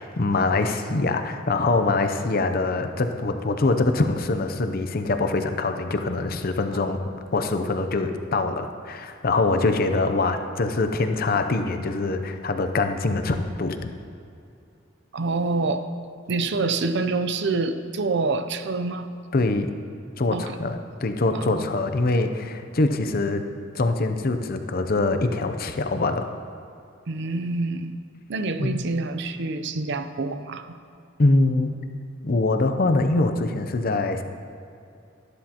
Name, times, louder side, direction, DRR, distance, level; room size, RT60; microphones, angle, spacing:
voice 1, 0.0-13.9 19.3-19.7 20.2-23.4 23.7-26.3 28.6-28.8 31.2-31.7 32.2-34.2, left 2 dB, 45° left, 7 dB, 0.6 m, -24 dB
voice 2, 15.1-15.9 16.3-19.1 20.3-20.6 21.3-21.7 27.1-27.9 28.3-30.7, right 3 dB, 60° right, 10 dB, 0.5 m, -26 dB
12.5 x 11.5 x 2.9 m, 2.6 s
head